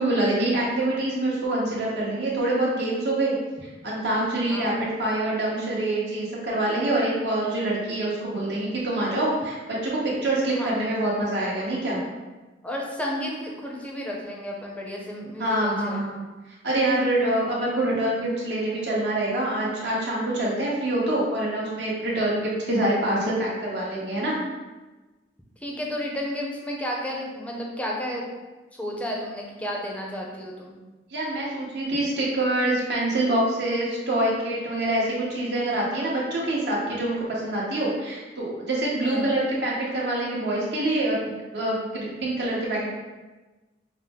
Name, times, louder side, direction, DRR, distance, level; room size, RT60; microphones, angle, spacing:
voice 1, 0.0-3.3 3.8-12.0 15.4-16.2 16.6-24.4 31.1-42.9, right 1 dB, 65° right, -5 dB, 1.2 m, -25 dB
voice 2, 12.6-16.0 25.6-28.3 28.7-30.8 39.0-39.3, equal, 10° left, -2 dB, 0.6 m, -32 dB
5.6 x 2.0 x 3.6 m, 1.2 s
head